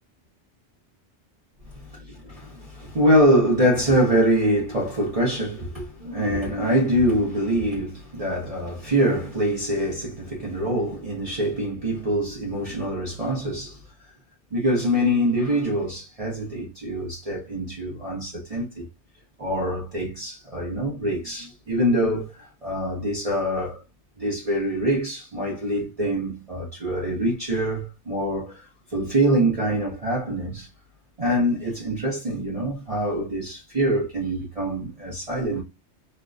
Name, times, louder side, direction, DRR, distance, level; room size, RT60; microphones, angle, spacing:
voice 1, 1.7-13.8 14.5-18.9 19.4-23.8 24.2-30.7 31.2-35.6, equal, 35° right, 1.1 m, -24 dB
3.2 x 2.2 x 2.4 m
omnidirectional pair, 1.2 m